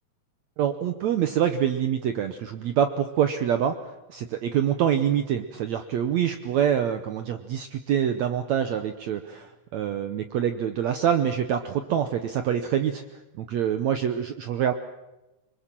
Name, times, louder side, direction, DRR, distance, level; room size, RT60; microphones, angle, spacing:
voice 1, 0.6-3.7 4.1-13.0 13.4-14.7, right 9 dB, 75° right, 9 dB, 1.6 m, -25 dB
25.0 x 22.0 x 7.5 m, 1.0 s
omnidirectional pair, 4.4 m